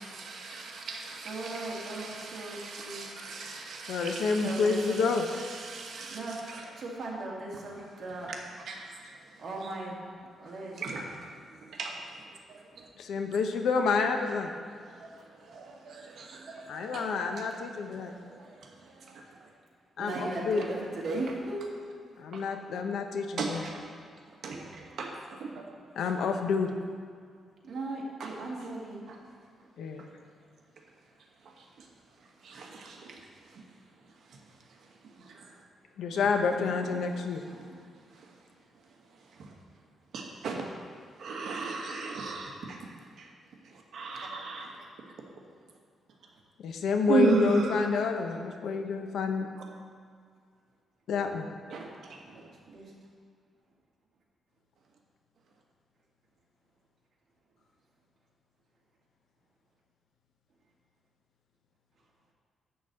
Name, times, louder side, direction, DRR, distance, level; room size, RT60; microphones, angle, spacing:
voice 1, 0.0-4.3 5.6-6.2 8.7-8.8 10.8-11.0 11.8-11.9 15.5-17.0 22.3-22.4 23.4-23.5 24.4-24.6 25.0-25.1 25.5-25.6 32.4-33.0 40.1-40.6 41.2-42.5 43.9-44.7 47.1-47.7 51.7-51.8, right 4 dB, 60° right, 0 dB, 1.3 m, -33 dB
voice 2, 1.1-3.1 4.3-5.0 6.1-8.3 9.4-10.0 10.4-10.9 20.0-21.8 27.6-29.0 36.6-37.8 44.1-44.2 52.3-52.9, right 2 dB, 45° right, -4 dB, 2.2 m, -38 dB
voice 3, 3.9-5.2 13.0-14.5 16.7-18.1 20.0-20.6 22.2-23.7 25.9-26.7 29.8-30.0 36.0-37.4 46.6-49.5 51.1-51.5, left 5 dB, 70° left, 5 dB, 0.8 m, -28 dB
11.0 x 4.1 x 7.7 m, 2.1 s
cardioid pair, 155°, 0 cm